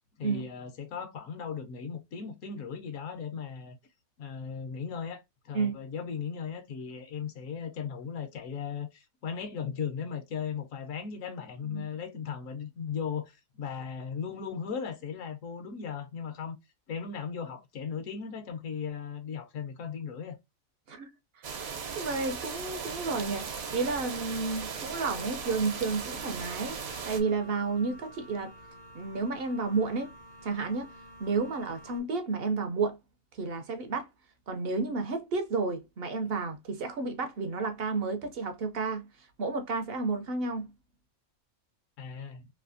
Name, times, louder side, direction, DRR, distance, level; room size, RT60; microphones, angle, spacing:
voice 1, 0.2-3.8 4.2-16.6 16.9-20.4 42.0-42.5, left 6 dB, 70° left, 1.1 m, -37 dB
sound 1, 21.4-27.2, right 6 dB, 85° right, 1.3 m, -38 dB
voice 2, 21.9-26.8 27.0-28.5 28.9-30.1 30.4-30.9 31.2-33.0 33.3-34.1 34.5-39.1 39.4-40.7, right 4 dB, 65° right, 0.6 m, -31 dB
sound 2, 24.9-32.0, equal, 50° left, 0.6 m, -51 dB
3.2 x 2.6 x 2.5 m
omnidirectional pair, 1.5 m